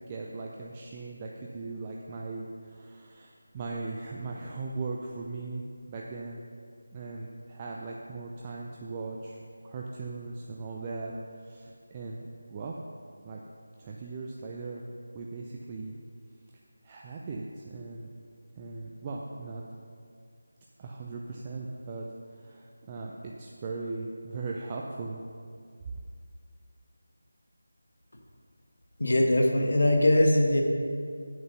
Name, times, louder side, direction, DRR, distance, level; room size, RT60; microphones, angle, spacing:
voice 1, 0.1-6.5 6.9-9.4 9.6-11.1 11.4-12.8 13.2-13.4 13.8-16.0 16.8-18.1 18.6-19.6 20.8-22.1 22.3-25.2, right 3 dB, 20° right, -2 dB, 0.5 m, -38 dB
voice 2, 29.0-30.6, left 1 dB, 65° left, 1 dB, 1.6 m, -21 dB
8.1 x 7.7 x 5.5 m, 2.2 s
figure-of-eight pair, 170°, 0 cm